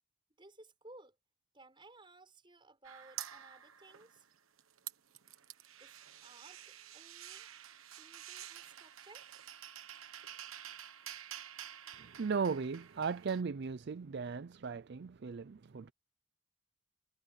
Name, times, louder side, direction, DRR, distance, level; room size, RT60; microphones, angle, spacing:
voice 1, 0.4-1.2 1.5-4.3 5.8-7.5 8.0-9.4, right 2 dB, 25° right, 6.9 m, -58 dB
sound 1, 2.8-4.3 4.6-13.4, right 11 dB, 90° right, 1.3 m, -49 dB
voice 2, 12.0-15.9, right 5 dB, 55° right, 0.4 m, -37 dB
head